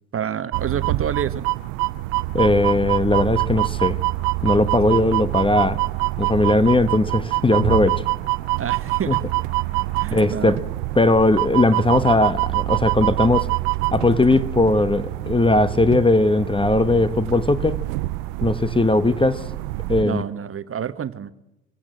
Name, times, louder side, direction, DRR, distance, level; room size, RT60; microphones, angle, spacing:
voice 1, 0.1-1.5 8.6-9.2 10.0-10.6 20.0-21.3, right 8 dB, 30° right, 1.1 m, -28 dB
sound 1, 0.5-20.0, right 21 dB, 70° right, 0.7 m, -25 dB
voice 2, 2.3-4.0 4.4-5.8 6.2-8.0 9.1-9.2 10.1-10.6 11.0-13.5 13.9-17.8 18.4-19.5 19.9-20.2, left 2 dB, 10° left, 1.1 m, -19 dB
24.5 x 16.5 x 7.6 m
hypercardioid pair, 65°, 42 cm